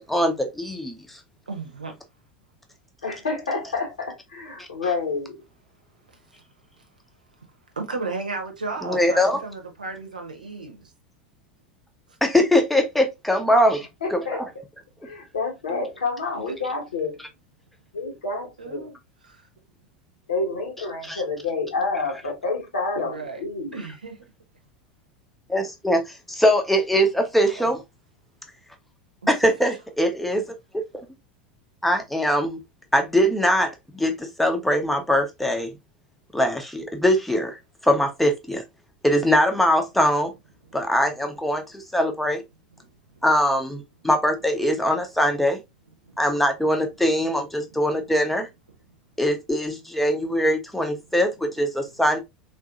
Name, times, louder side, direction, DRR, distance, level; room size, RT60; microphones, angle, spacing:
voice 1, 0.1-1.2 4.6-4.7 8.8-9.4 12.2-13.8 14.1-14.4 21.1-21.2 25.5-27.8 29.3-30.5 31.8-32.6 32.9-35.7 36.3-38.6 39.0-40.3 40.7-42.4 43.2-45.6 46.2-48.5 49.2-52.2, equal, 5° left, 0.7 m, -22 dB
voice 2, 1.5-1.9 7.8-10.9 15.7-15.8 16.3-16.5 18.6-19.0 19.2-19.4 23.0-23.4 23.7-24.2 27.6-27.7 29.2-29.3 43.1-43.2 46.0-46.2, right 3 dB, 80° right, 0.9 m, -34 dB
voice 3, 3.0-5.4 13.5-13.7 14.0-14.4 15.0-17.2 17.9-18.9 20.3-23.8, left 3 dB, 70° left, 1.2 m, -28 dB
3.9 x 2.7 x 2.4 m
figure-of-eight pair, 80°, 4 cm